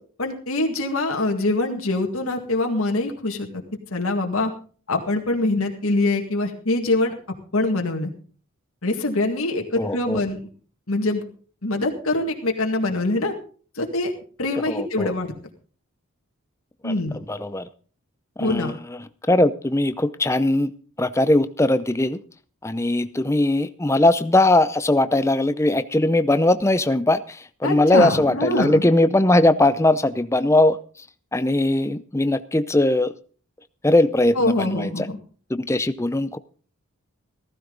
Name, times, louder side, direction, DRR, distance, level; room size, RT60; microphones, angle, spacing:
voice 1, 0.2-3.5 3.9-4.5 4.9-7.1 7.5-8.1 8.8-10.4 10.9-11.2 11.6-13.3 13.8-14.1 14.4-15.3 16.8-17.2 18.4-18.7 27.6-28.8 34.4-35.2, left 2 dB, 70° left, 3 dB, 1.9 m, -24 dB
voice 2, 9.8-10.2 14.6-15.1 16.8-17.7 18.4-19.0 19.3-20.7 21.0-22.2 22.6-30.8 31.3-33.1 33.8-35.1 35.5-36.4, left 1 dB, 10° left, 12 dB, 0.6 m, -20 dB
15.0 x 14.5 x 3.9 m, 0.41 s
head